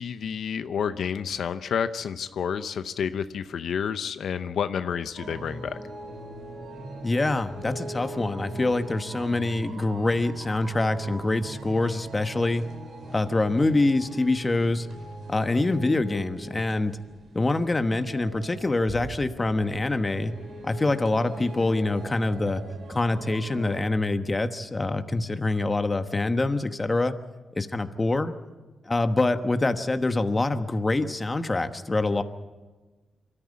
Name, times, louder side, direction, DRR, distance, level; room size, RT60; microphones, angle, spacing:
voice 1, 0.0-5.8, left 7 dB, 75° left, 11 dB, 0.7 m, -30 dB
sound 1, 5.1-23.8, right 2 dB, 70° right, 4.5 m, -41 dB
voice 2, 7.0-12.6 13.1-14.9 15.3-16.9 17.3-20.3 20.6-22.6 22.9-27.2 27.6-28.3 28.9-32.2, left 2 dB, 25° left, 8 dB, 1.2 m, -25 dB
25.0 x 13.5 x 8.5 m, 1.3 s
cardioid pair, 100°, 0 cm